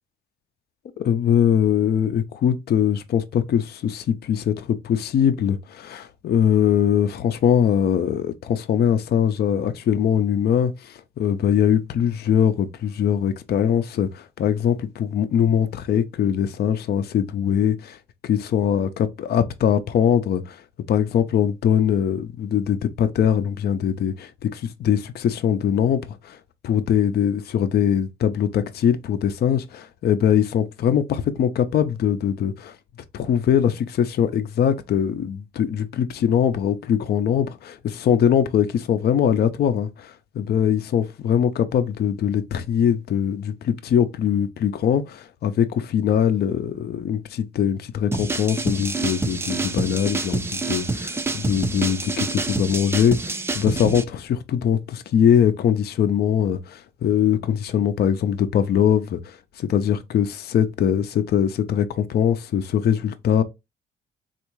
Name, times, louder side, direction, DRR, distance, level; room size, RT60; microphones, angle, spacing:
voice 1, 1.0-18.0 18.2-20.6 20.9-26.4 26.6-32.8 33.1-63.4, left 9 dB, 55° left, 0.4 m, -22 dB
sound 1, 48.1-54.0, right 3 dB, 10° right, 0.3 m, -27 dB
3.5 x 2.4 x 3.0 m
cardioid pair, 90°, 20 cm